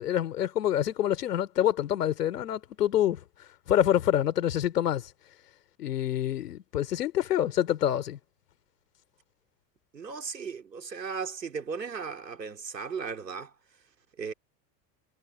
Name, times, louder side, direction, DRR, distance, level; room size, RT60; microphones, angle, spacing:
voice 1, 0.0-3.2 3.7-5.1 5.8-8.2, left 11 dB, 70° left, 3.6 m, -26 dB
voice 2, 9.9-13.5 14.2-14.3, right 5 dB, 80° right, 2.9 m, -36 dB
figure-of-eight pair, 70°, 49 cm